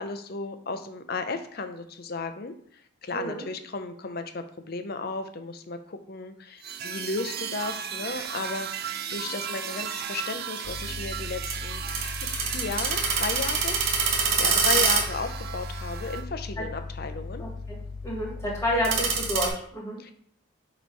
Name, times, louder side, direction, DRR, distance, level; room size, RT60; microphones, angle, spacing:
voice 1, 0.0-2.5 3.0-11.8 12.3-13.8 14.4-17.4 20.0-20.1, left 3 dB, 50° left, 8 dB, 0.6 m, -34 dB
voice 2, 3.1-3.4 16.6-16.7 17.4-17.8 18.0-20.0, equal, 15° left, -3 dB, 1.7 m, -30 dB
sound 1, 6.6-16.2, right 8 dB, 50° right, 0.4 m, -36 dB
sound 2, 10.6-19.5, right 4 dB, 85° right, 1.4 m, -28 dB
6.7 x 3.0 x 4.6 m, 0.64 s
head